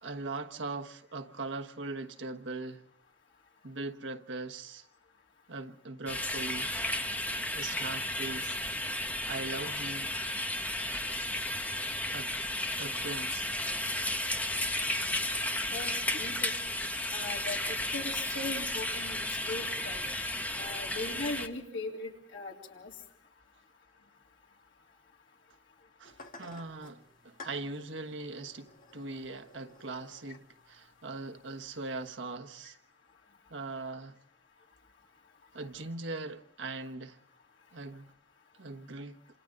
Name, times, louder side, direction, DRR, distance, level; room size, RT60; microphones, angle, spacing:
voice 1, 0.0-2.9 3.6-4.8 5.5-6.7 7.5-8.6 9.2-10.1 12.1-12.3 12.7-13.5 26.0-32.8 33.5-34.2 35.5-37.2 37.7-38.1 38.6-39.2, right 3 dB, 85° right, 1.2 m, -40 dB
sound 1, 6.1-21.5, left 1 dB, 10° left, 1.1 m, -33 dB
voice 2, 15.7-16.5 17.1-17.6 17.9-20.1 20.6-22.9, left 2 dB, 85° left, 3.6 m, -39 dB
sound 2, 26.0-32.1, left 3 dB, 45° left, 1.8 m, -55 dB
27.5 x 27.5 x 3.9 m
head